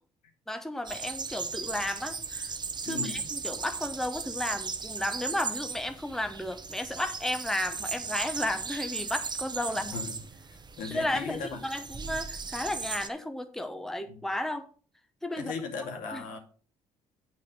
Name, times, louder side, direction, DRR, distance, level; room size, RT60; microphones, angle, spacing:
voice 1, 0.5-2.5 2.8-10.0 10.9-14.7 15.2-15.5 16.1-16.2, left 1 dB, 5° left, 8 dB, 1.0 m, -33 dB
sound 1, 0.8-13.1, right 5 dB, 35° right, 1.1 m, -37 dB
voice 2, 2.8-3.3 9.9-10.2 10.8-11.6 14.1-14.2 15.4-16.4, left 5 dB, 75° left, 2 dB, 2.4 m, -37 dB
7.7 x 5.8 x 6.3 m, 0.42 s
supercardioid pair, 65°, 13 cm